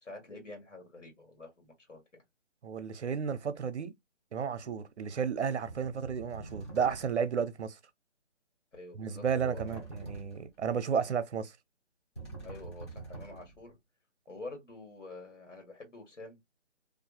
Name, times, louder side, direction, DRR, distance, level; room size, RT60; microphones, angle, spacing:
voice 1, 0.0-2.0 8.7-9.8 12.4-13.8 14.3-16.4, left 2 dB, 85° left, 1.6 m, -47 dB
voice 2, 2.6-3.9 4.3-7.8 8.9-11.5, right 6 dB, 65° right, 0.6 m, -32 dB
sound 1, 4.6-4.8 5.6-7.3 9.2-10.6 12.1-13.7, right 3 dB, 25° left, 0.8 m, -45 dB
2.6 x 2.4 x 2.4 m
figure-of-eight pair, 160°, 36 cm